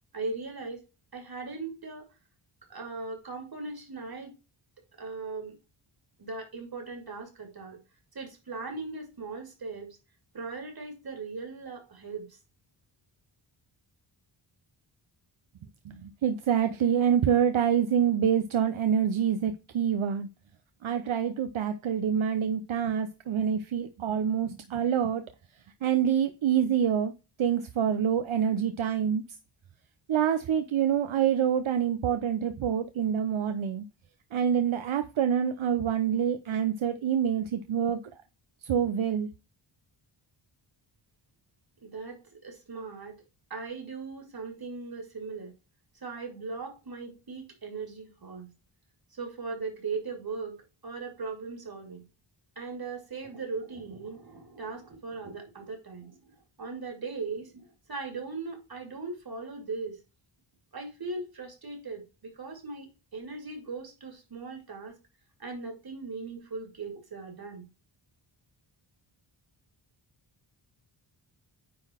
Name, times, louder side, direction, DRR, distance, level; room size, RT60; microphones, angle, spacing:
voice 1, 0.1-0.8 1.1-2.1 2.7-4.3 5.0-5.5 6.2-7.8 8.1-10.0 10.3-12.4 41.8-43.2 43.5-45.5 46.0-48.5 49.1-52.0 52.6-60.0 60.7-65.0 65.4-67.7, right 4 dB, 45° right, 2.6 m, -39 dB
voice 2, 15.8-20.3 20.8-25.2 25.8-27.1 27.4-29.2 30.1-33.9 34.3-38.0 38.6-39.3, right 8 dB, 75° right, 0.8 m, -26 dB
9.6 x 3.8 x 4.3 m
wide cardioid pair, 140°, 48 cm